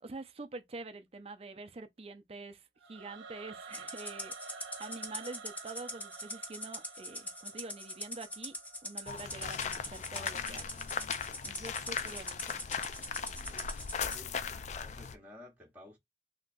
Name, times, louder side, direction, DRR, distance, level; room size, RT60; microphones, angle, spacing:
voice 1, 0.0-8.6 8.8-10.7 11.4-12.6, right 3 dB, 35° right, 0.5 m, -46 dB
Singing / Musical instrument, 2.8-9.9, right 5 dB, 75° right, 0.8 m, -50 dB
Rattle (instrument), 3.7-14.2, left 1 dB, 10° left, 0.7 m, -43 dB
sound 1, 9.1-15.1, left 6 dB, 40° left, 0.4 m, -38 dB
voice 2, 13.5-13.8 14.1-16.0, left 1 dB, 10° right, 1.1 m, -54 dB
3.8 x 2.9 x 2.6 m
head